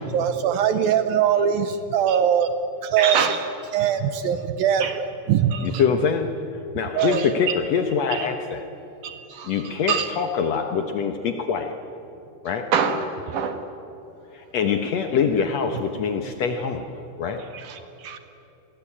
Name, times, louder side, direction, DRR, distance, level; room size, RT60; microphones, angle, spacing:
voice 1, 0.1-2.5 2.8-3.3 3.7-5.5 7.0-7.2, right 9 dB, 75° right, 10 dB, 2.4 m, -21 dB
voice 2, 3.0-3.4 4.8-5.0 5.5-5.8 7.0-7.6 8.1-8.3 9.0-10.1 12.7-13.7 17.5-18.2, right 6 dB, 55° right, 7 dB, 2.8 m, -27 dB
voice 3, 5.6-6.3 6.7-8.6 9.4-11.7 12.4-12.7 14.3-17.4 17.8-17.9, left 6 dB, 85° left, 6 dB, 1.5 m, -24 dB
29.0 x 23.0 x 8.6 m, 2.9 s
omnidirectional pair, 4.9 m